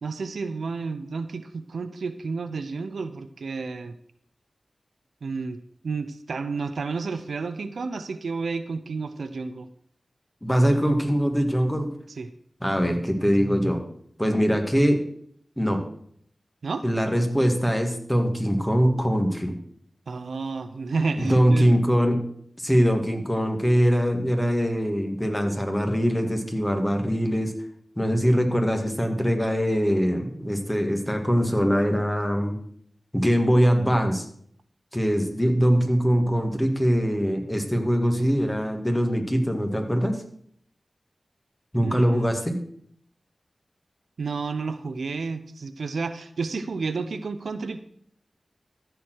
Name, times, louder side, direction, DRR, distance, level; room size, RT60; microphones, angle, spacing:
voice 1, 0.0-4.0 5.2-5.6 5.8-9.7 12.2-12.3 16.6-16.8 20.1-21.7 41.8-42.3 44.2-47.8, right 4 dB, 90° right, 11 dB, 0.6 m, -31 dB
voice 2, 10.4-11.9 12.6-13.8 14.2-15.0 15.6-15.8 16.8-19.5 21.1-22.2 22.6-27.5 28.0-32.6 33.1-34.3 34.9-40.2 41.7-42.6, equal, 10° left, 4 dB, 2.0 m, -22 dB
13.5 x 4.7 x 6.2 m, 0.64 s
cardioid pair, 45°, 0 cm